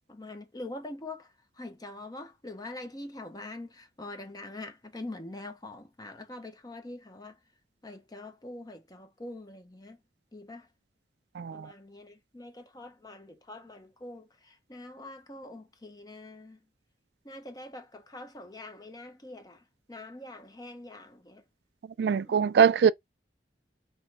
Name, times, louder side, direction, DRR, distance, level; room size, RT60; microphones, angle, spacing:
voice 1, 0.1-7.4 7.8-10.0 10.3-10.7 11.5-16.6 17.2-21.4 22.2-22.5, left 2 dB, 20° left, 0.7 m, -44 dB
voice 2, 11.4-11.7 22.0-22.9, right 7 dB, 65° right, 0.3 m, -22 dB
3.4 x 3.0 x 4.0 m
head